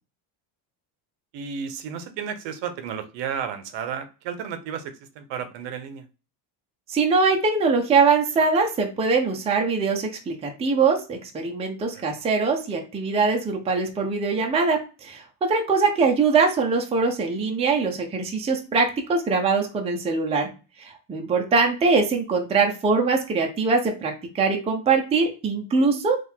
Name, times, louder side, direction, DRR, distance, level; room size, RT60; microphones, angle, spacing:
voice 1, 1.3-6.0 11.9-12.0, right 7 dB, 65° right, 10 dB, 0.8 m, -33 dB
voice 2, 6.9-20.5 20.8-26.2, right 4 dB, 15° right, 2 dB, 0.5 m, -22 dB
3.7 x 2.5 x 4.4 m, 0.32 s
cardioid pair, 160°, 48 cm